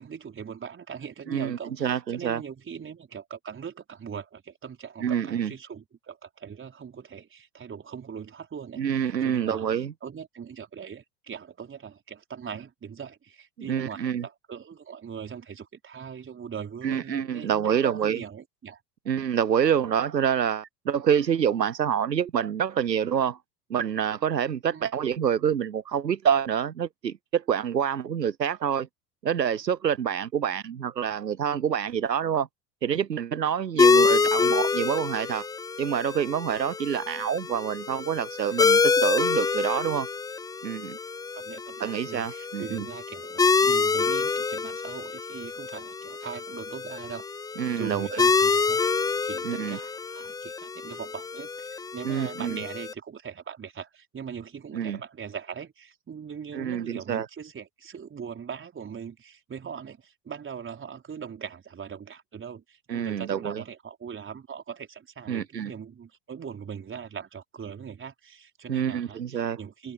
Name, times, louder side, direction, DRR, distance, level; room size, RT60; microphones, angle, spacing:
voice 1, 0.0-18.8 24.7-24.9 33.9-34.3 41.3-48.8 49.2-69.9, right 7 dB, 25° right, 4.7 m, -41 dB
voice 2, 1.3-2.4 5.0-5.5 8.8-9.9 13.7-14.2 16.8-18.2 19.1-23.4 23.7-28.9 29.2-32.5 32.8-35.5 35.8-40.1 40.6-41.0 41.8-42.9 47.6-48.2 49.4-49.8 52.0-52.6 54.7-55.0 56.5-57.3 62.9-63.6 65.3-65.7 68.7-69.6, right 8 dB, 85° right, 0.8 m, -27 dB
sound 1, 33.8-52.9, left 4 dB, 10° left, 0.5 m, -26 dB
figure-of-eight pair, 75°, 48 cm